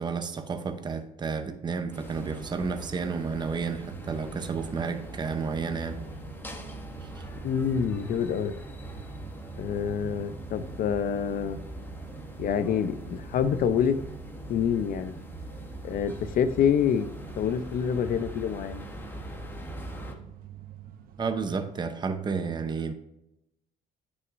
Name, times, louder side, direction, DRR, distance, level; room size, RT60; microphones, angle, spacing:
voice 1, 0.0-6.0 7.0-7.3 21.2-22.9, right 5 dB, 25° right, 8 dB, 0.8 m, -31 dB
sound 1, 1.9-20.1, equal, 10° left, 1.2 m, -42 dB
sound 2, 2.2-21.8, right 9 dB, 60° right, 0.8 m, -47 dB
voice 2, 7.4-8.5 9.6-11.6 12.4-14.0 14.5-15.1 15.8-17.1 17.4-18.8, left 8 dB, 55° left, 12 dB, 0.7 m, -26 dB
9.2 x 6.3 x 2.6 m, 0.88 s
cardioid pair, 110°, 17 cm